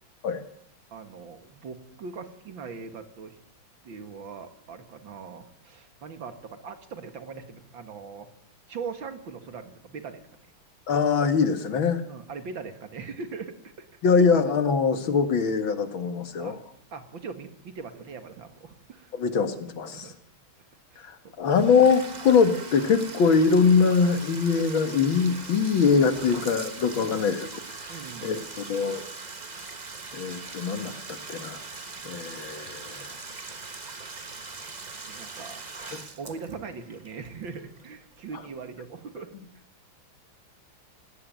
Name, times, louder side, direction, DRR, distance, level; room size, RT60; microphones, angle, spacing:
voice 1, 0.9-3.4 3.8-8.3 8.7-10.2 12.1-13.9 14.1-14.2 16.3-16.6 16.9-19.1 19.9-20.2 20.9-21.1 26.9-27.2 27.9-28.3 31.9-32.1 35.1-35.7 35.9-39.3, right 5 dB, 70° right, 8 dB, 2.7 m, -40 dB
voice 2, 10.9-12.0 14.0-16.6 19.1-20.1 21.1-27.5 28.2-28.4 28.7-29.0 30.1-31.6 32.1-33.0, left 5 dB, 75° left, 9 dB, 2.5 m, -23 dB
Bathtub (filling or washing), 21.4-38.2, right 3 dB, 25° right, 1.2 m, -41 dB
18.0 x 18.0 x 9.4 m, 0.69 s
omnidirectional pair, 2.2 m